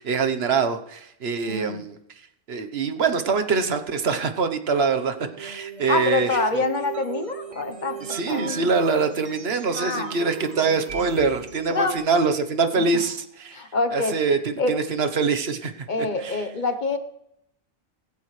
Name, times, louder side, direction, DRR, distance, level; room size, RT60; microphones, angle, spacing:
voice 1, 0.0-2.0 2.5-6.4 8.1-13.6 13.9-15.9 16.2-16.4, right 4 dB, 70° right, 7 dB, 1.3 m, -24 dB
voice 2, 1.4-1.8 5.9-8.7 9.7-10.1 11.7-12.0 12.8-13.0 13.5-14.2 14.6-14.7 15.9-17.0, left 3 dB, 45° left, 9 dB, 1.2 m, -26 dB
sound 1, 5.1-12.2, right 7 dB, 35° right, 0.7 m, -38 dB
18.5 x 16.0 x 3.3 m, 0.78 s
omnidirectional pair, 1.1 m